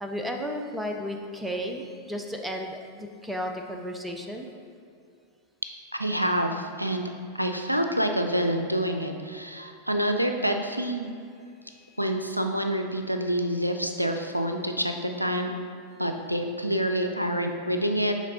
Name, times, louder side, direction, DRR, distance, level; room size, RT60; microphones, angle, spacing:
voice 1, 0.0-4.5 11.6-12.0, equal, 5° right, 3 dB, 0.5 m, -34 dB
voice 2, 5.9-7.1 7.3-11.1 12.0-15.5 16.0-18.2, equal, 90° right, 5 dB, 0.4 m, -27 dB
7.3 x 3.4 x 3.8 m, 2.4 s
figure-of-eight pair, 90°, 0 cm